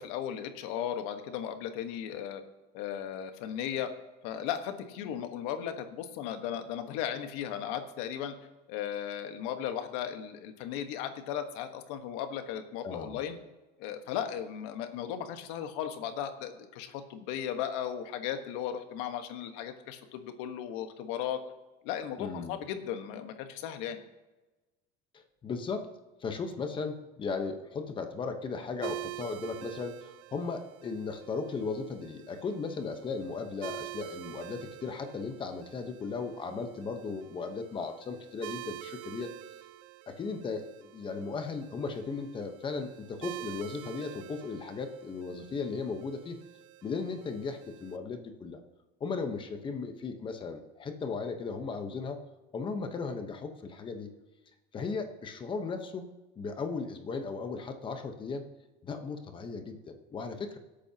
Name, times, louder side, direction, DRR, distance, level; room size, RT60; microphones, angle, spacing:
voice 1, 0.0-2.4 2.7-3.9 4.2-8.3 8.7-13.4 13.8-21.4 21.8-24.0, left 9 dB, 80° left, 7 dB, 1.4 m, -36 dB
voice 2, 12.8-13.2 22.2-22.6 25.1-25.9 26.2-39.3 40.1-46.4 46.8-48.6 49.0-52.2 52.5-54.1 54.7-58.5 58.8-60.6, left 4 dB, 25° left, 6 dB, 1.0 m, -36 dB
sound 1, 28.8-48.0, right 16 dB, 85° right, 0.7 m, -47 dB
24.0 x 8.5 x 2.9 m, 1.1 s
cardioid pair, 160°, 21 cm